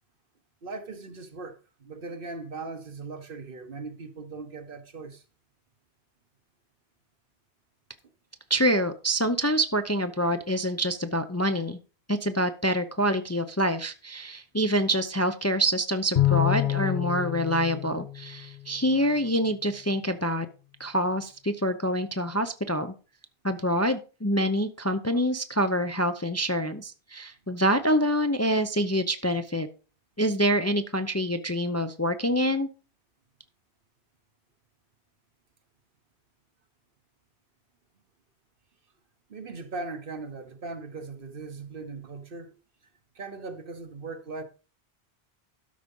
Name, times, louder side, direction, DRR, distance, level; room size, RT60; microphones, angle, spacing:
voice 1, 0.6-5.2 39.3-42.5 43.1-44.4, right 3 dB, 55° right, 1.3 m, -39 dB
voice 2, 8.5-11.8 12.1-20.5 20.8-22.9 23.4-29.7 30.2-32.7, equal, 15° left, 0.6 m, -26 dB
Bowed string instrument, 16.2-18.8, left 14 dB, 50° left, 0.8 m, -27 dB
13.0 x 5.0 x 5.4 m
omnidirectional pair, 1.1 m